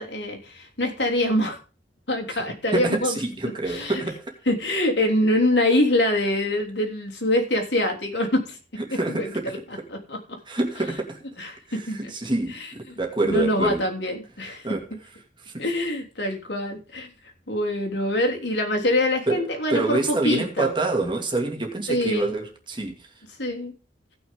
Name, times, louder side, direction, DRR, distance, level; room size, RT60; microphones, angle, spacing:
voice 1, 0.0-1.6 2.1-3.2 3.7-4.0 4.5-8.6 8.9-9.6 9.9-10.2 11.4-12.1 12.5-12.7 13.2-14.7 15.6-17.1 17.5-20.7 21.9-22.3 23.4-23.7, left 1 dB, 70° left, 2 dB, 3.2 m, -24 dB
voice 2, 2.7-4.3 8.9-9.5 10.5-11.2 11.7-13.8 14.6-14.9 15.4-15.6 19.3-23.1, right 2 dB, 25° right, 2 dB, 2.3 m, -27 dB
17.5 x 6.3 x 3.7 m, 0.34 s
head